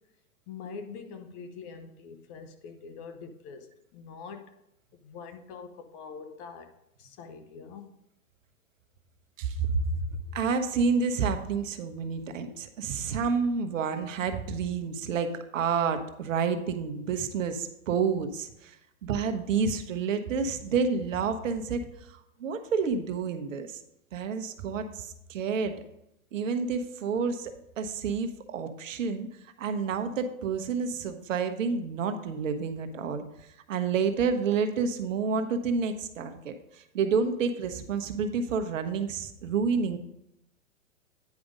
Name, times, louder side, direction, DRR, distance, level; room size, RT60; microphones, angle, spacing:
voice 1, 0.5-4.5 5.0-6.7 7.0-7.9, left 5 dB, 35° left, 1.0 m, -44 dB
voice 2, 9.4-9.9 10.3-18.7 19.0-23.8 24.1-25.7 26.3-29.3 29.6-33.2 33.7-36.5 36.9-40.0, right 5 dB, 70° right, 1.1 m, -29 dB
9.5 x 5.1 x 5.1 m
hypercardioid pair, 125°, 41 cm